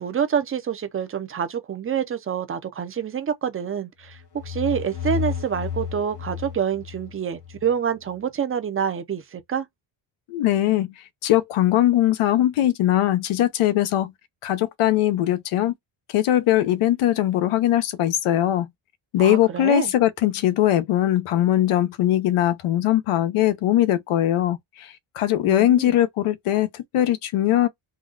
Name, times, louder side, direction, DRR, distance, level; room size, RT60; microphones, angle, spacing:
voice 1, 0.0-4.2 4.4-9.7 19.2-19.9 25.4-25.9, right 8 dB, 30° right, 0.5 m, -27 dB
sound 1, 4.1-7.7, left 8 dB, 55° left, 1.3 m, -32 dB
voice 2, 10.3-10.9 11.2-14.1 14.4-15.7 16.1-18.7 19.1-27.7, left 13 dB, 85° left, 0.8 m, -21 dB
3.8 x 2.3 x 2.4 m
cardioid pair, 145°, 49 cm